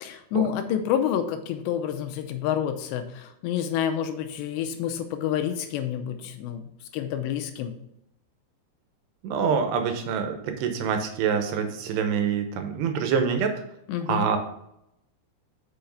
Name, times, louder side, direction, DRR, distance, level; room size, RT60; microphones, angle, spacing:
voice 1, 0.0-6.6 6.9-7.7 13.9-14.3, left 9 dB, 90° left, 7 dB, 2.9 m, -28 dB
voice 2, 9.2-13.5 14.1-14.4, right 6 dB, 80° right, 6 dB, 3.0 m, -25 dB
7.3 x 5.7 x 5.3 m, 0.77 s
omnidirectional pair, 5.0 m